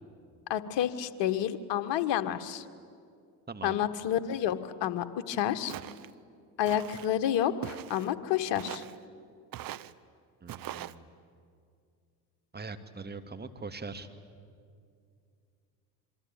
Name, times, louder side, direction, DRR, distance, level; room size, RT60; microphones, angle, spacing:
voice 1, 0.5-2.6 3.6-5.7 6.6-8.8, left 10 dB, 60° left, 10 dB, 1.6 m, -29 dB
voice 2, 3.5-3.8 10.4-11.1 12.5-14.1, right 4 dB, 20° right, 8 dB, 2.1 m, -42 dB
Walk footsteps, 5.7-6.1 6.7-7.1 7.6-8.1 8.6-9.0 9.5-9.9 10.5-11.0, right 13 dB, 45° right, 0.9 m, -41 dB
26.5 x 24.0 x 9.0 m, 2.3 s
hypercardioid pair, 65°, 49 cm